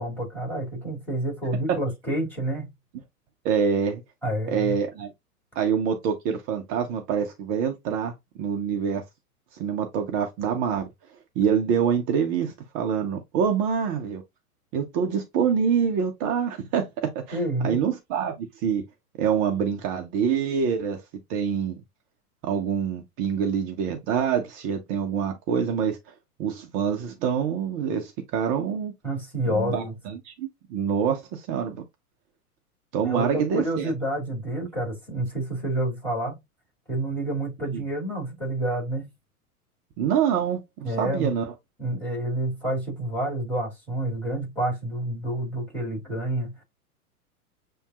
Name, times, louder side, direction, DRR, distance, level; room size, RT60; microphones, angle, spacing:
voice 1, 0.0-2.7 4.2-4.8 17.3-17.8 29.0-29.9 33.0-36.4 36.9-39.1 40.8-41.3 41.8-46.6, right 1 dB, 5° left, 3.0 m, -29 dB
voice 2, 3.4-4.0 4.5-5.1 5.6-8.1 8.4-9.0 9.6-10.9 11.4-14.2 14.7-18.8 19.2-21.0 21.3-21.8 22.4-26.0 26.4-28.9 29.5-31.8 32.9-33.9 40.0-40.6 40.9-41.5, right 7 dB, 20° right, 0.4 m, -26 dB
6.9 x 2.8 x 2.4 m
figure-of-eight pair, 105°, 45 cm